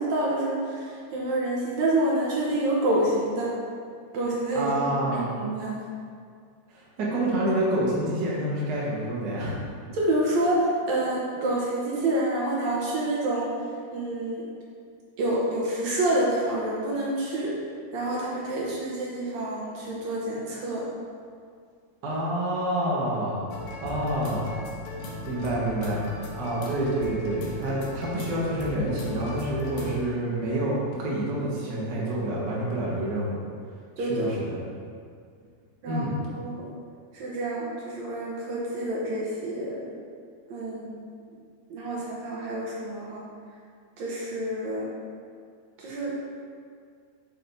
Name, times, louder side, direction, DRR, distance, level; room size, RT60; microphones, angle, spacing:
voice 1, 0.0-3.5 4.1-5.7 9.9-13.5 13.9-14.5 15.2-17.6 17.9-20.9 34.0-34.3 35.8-36.1 36.3-36.7 37.1-39.9 40.5-41.1 41.7-43.2 44.0-44.9 45.8-46.2, right 1 dB, 65° right, -5 dB, 1.8 m, -28 dB
voice 2, 4.5-5.3 6.7-9.6 22.0-23.4 23.8-24.5 25.2-26.1 26.4-33.4 34.0-34.6 35.9-36.2, right 1 dB, 90° right, -6 dB, 0.9 m, -28 dB
sound 1, 23.5-30.0, left 2 dB, 70° left, 1.8 m, -37 dB
9.2 x 5.9 x 2.7 m, 2.2 s
omnidirectional pair, 4.3 m